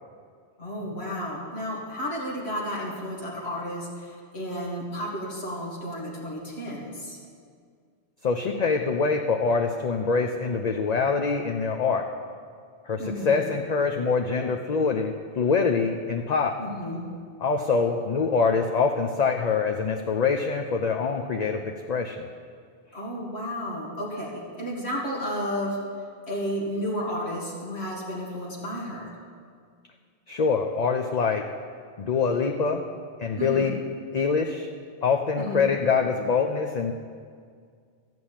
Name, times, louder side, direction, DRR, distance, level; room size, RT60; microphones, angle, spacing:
voice 1, 0.6-7.2 13.0-13.4 16.6-17.0 22.9-25.8 26.3-29.1 33.4-33.7 35.4-35.7, equal, 75° left, -5 dB, 2.4 m, -32 dB
voice 2, 8.2-12.0 12.9-16.5 17.4-22.2 30.3-31.4 32.0-32.9 33.2-33.8 34.1-34.7 35.0-36.9, left 5 dB, 45° left, 3 dB, 0.7 m, -24 dB
13.0 x 6.2 x 8.7 m, 2.1 s
omnidirectional pair, 1.1 m